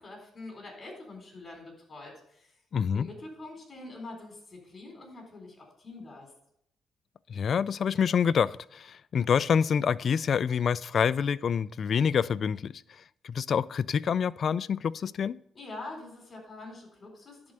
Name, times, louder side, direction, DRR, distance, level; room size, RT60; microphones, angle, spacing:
voice 1, 0.0-2.5 2.9-6.3 15.5-17.5, left 2 dB, 35° left, 3.9 m, -45 dB
voice 2, 2.7-3.1 7.3-15.4, left 7 dB, 55° left, 0.3 m, -27 dB
11.0 x 4.3 x 7.7 m
cardioid pair, 90°, 0 cm